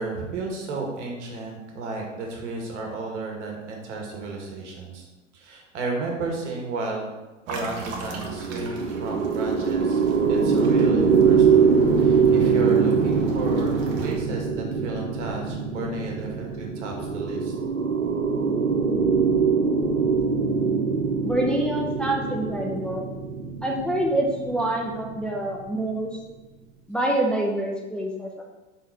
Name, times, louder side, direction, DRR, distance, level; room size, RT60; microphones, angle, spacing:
voice 1, 0.0-5.0 5.3-7.1 7.5-10.0 10.3-11.7 12.0-17.5, right 3 dB, 65° right, 0 dB, 2.1 m, -33 dB
sound 1, 7.5-14.1, right 4 dB, 40° right, 1.6 m, -37 dB
sound 2, 8.2-25.7, right 5 dB, 90° right, 0.8 m, -23 dB
voice 2, 21.2-23.1 23.6-26.1 26.9-28.4, right 1 dB, ahead, -2 dB, 0.9 m, -26 dB
5.4 x 4.7 x 5.9 m, 1.1 s
hypercardioid pair, 100°, 38 cm